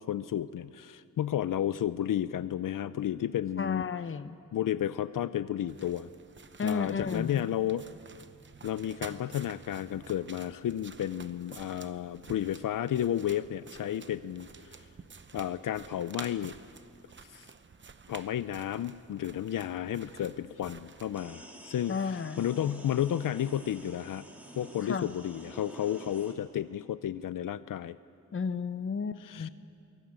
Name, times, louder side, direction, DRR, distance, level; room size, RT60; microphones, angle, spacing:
voice 1, 0.0-3.9 4.5-6.1 6.6-7.9 8.6-14.5 15.3-16.6 17.3-17.5 18.1-24.2 24.6-28.0 29.2-29.5, left 11 dB, 80° left, 15 dB, 0.5 m, -32 dB
voice 2, 3.6-4.4 6.6-7.4 21.9-22.4 24.8-25.1 28.3-29.5, left 5 dB, 40° left, 13 dB, 0.8 m, -33 dB
sound 1, 5.7-21.2, right 5 dB, 35° right, 0.8 m, -51 dB
sound 2, 21.1-26.3, equal, 5° right, 2.6 m, -49 dB
23.0 x 16.5 x 8.8 m, 2.8 s
wide cardioid pair, 125°, 32 cm